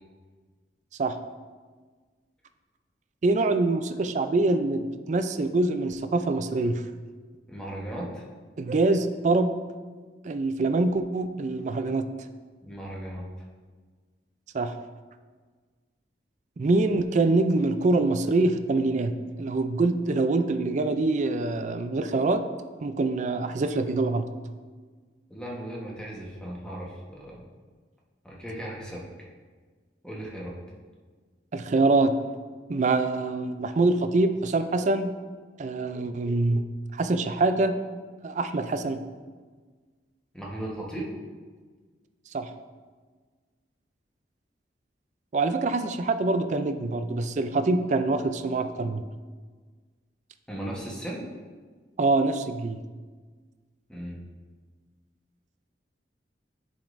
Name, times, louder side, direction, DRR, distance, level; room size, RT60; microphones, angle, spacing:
voice 1, 3.2-6.8 8.6-9.5 10.2-12.1 14.5-14.7 16.6-22.4 22.8-24.3 31.5-32.1 32.7-35.1 35.6-36.7 36.9-37.8 38.2-39.0 42.3-42.5 45.3-49.0 52.0-52.8, right 2 dB, 40° right, 9 dB, 0.4 m, -25 dB
voice 2, 7.5-8.2 12.6-13.3 25.3-27.4 28.2-29.1 30.0-30.5 40.3-41.1 50.5-51.2 53.9-54.2, right 1 dB, 5° left, -4 dB, 1.1 m, -36 dB
10.0 x 5.1 x 2.6 m, 1.5 s
head